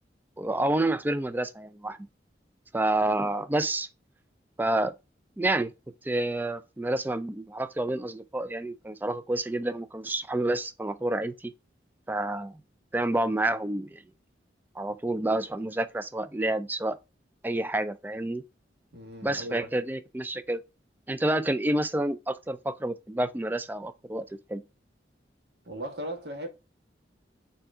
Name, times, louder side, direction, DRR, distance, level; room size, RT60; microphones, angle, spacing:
voice 1, 0.4-2.0 2.7-3.9 4.6-4.9 5.4-5.7 6.0-11.5 12.1-12.6 12.9-14.0 14.8-17.0 17.4-18.4 19.2-20.6 21.1-24.2 24.5-24.6, right 1 dB, 10° right, 0.3 m, -29 dB
voice 2, 18.9-19.7 25.6-26.5, right 1 dB, 65° right, 1.3 m, -37 dB
4.6 x 2.7 x 3.6 m
head